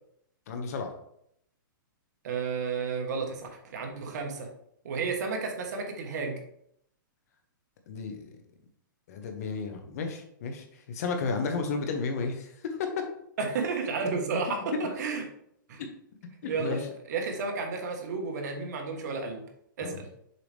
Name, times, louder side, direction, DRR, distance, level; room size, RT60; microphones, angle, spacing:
voice 1, 0.5-0.9 7.9-8.3 9.1-13.0 15.8-15.9 16.4-16.9 19.8-20.0, left 4 dB, 45° left, 5 dB, 1.1 m, -33 dB
voice 2, 2.2-4.5 4.8-6.4 13.4-15.2 15.7-15.8 16.4-16.8 17.1-19.4 19.8-20.1, right 4 dB, 55° right, 2 dB, 1.5 m, -32 dB
6.8 x 4.9 x 3.5 m, 0.72 s
hypercardioid pair, 165°, 11 cm